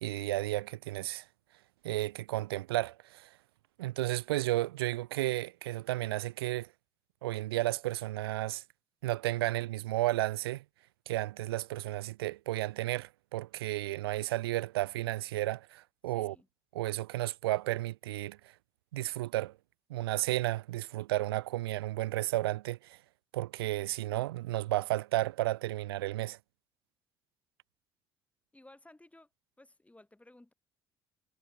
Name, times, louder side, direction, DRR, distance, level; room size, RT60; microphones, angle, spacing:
voice 1, 0.0-1.2 1.8-3.3 3.8-6.7 7.2-8.6 9.0-10.6 11.1-16.4 16.7-18.4 18.9-19.5 19.9-23.0 23.3-26.4, right 16 dB, 75° right, 0.5 m, -33 dB
voice 2, 16.1-16.5 28.5-29.3 29.6-30.5, left 1 dB, 10° left, 7.9 m, -57 dB
figure-of-eight pair, 50°, 13 cm